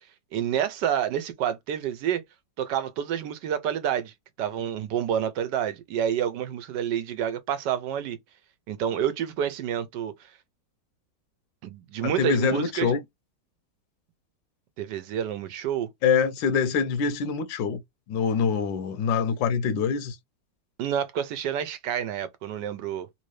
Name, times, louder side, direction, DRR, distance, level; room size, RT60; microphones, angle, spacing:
voice 1, 0.3-2.2 2.6-8.2 8.7-10.3 11.6-12.9 14.8-15.9 20.8-23.1, right 9 dB, 75° right, 1.2 m, -28 dB
voice 2, 12.0-13.0 16.0-17.8 18.1-20.2, left 6 dB, 85° left, 1.3 m, -25 dB
3.4 x 2.7 x 3.2 m
omnidirectional pair, 1.9 m